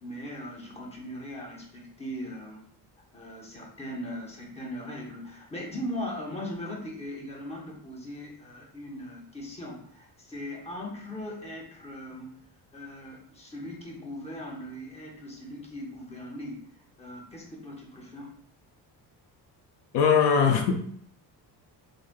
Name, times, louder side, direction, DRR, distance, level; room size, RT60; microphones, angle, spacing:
voice 1, 0.0-2.7 3.1-12.4 12.7-16.7 17.0-18.3 20.5-20.6, left 1 dB, 15° left, -2 dB, 0.8 m, -39 dB
voice 2, 19.9-21.0, left 6 dB, 75° left, 4 dB, 0.5 m, -22 dB
3.2 x 2.6 x 2.2 m, 0.62 s
cardioid pair, 95°, 42 cm